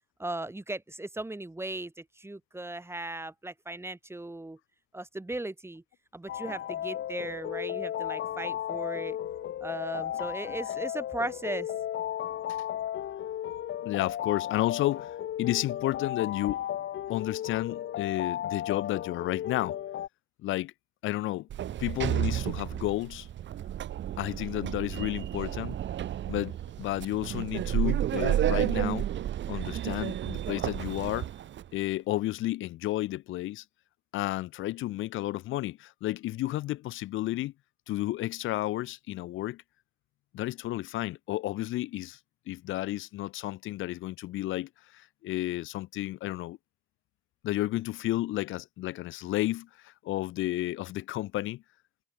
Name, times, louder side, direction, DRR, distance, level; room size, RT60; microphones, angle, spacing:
voice 1, 0.2-4.6 4.9-5.8 6.1-9.2 9.6-11.7, right 2 dB, 10° right, 6.8 m, -37 dB
sound 1, 6.3-20.1, left 11 dB, 70° left, 4.5 m, -35 dB
voice 2, 13.8-15.1 15.4-16.6 17.1-19.8 20.4-20.7 21.0-21.5 21.8-23.3 24.2-25.8 26.3-29.1 29.5-31.3 31.7-33.6 34.1-37.5 37.9-39.6 40.3-42.2 42.5-46.6 47.4-51.6, left 16 dB, 85° left, 1.0 m, -32 dB
Sliding door, 21.5-31.6, right 11 dB, 65° right, 1.7 m, -31 dB
cardioid pair, 90°, 20 cm